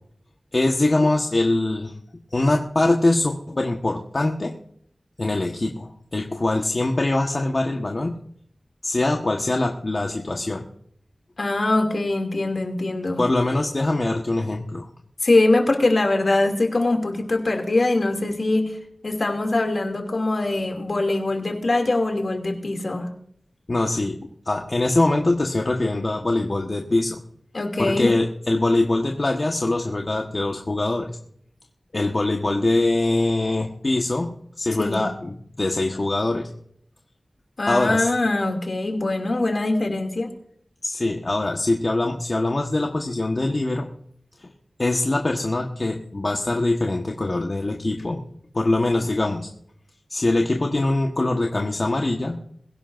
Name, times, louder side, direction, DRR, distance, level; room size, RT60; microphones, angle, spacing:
voice 1, 0.5-1.9 2.3-4.6 5.2-8.2 8.8-10.7 13.2-14.9 23.7-24.2 24.4-27.2 27.8-31.1 31.9-36.5 37.7-38.1 40.8-43.9 44.4-44.5 44.8-48.2 48.5-49.5 50.1-52.6, left 2 dB, 50° left, 1 dB, 1.4 m, -23 dB
voice 2, 11.4-13.2 15.2-18.8 19.0-23.1 27.5-28.1 34.8-35.0 37.6-40.3, left 2 dB, 65° left, 3 dB, 2.7 m, -22 dB
22.5 x 11.0 x 2.6 m, 0.66 s
wide cardioid pair, 55°, 0 cm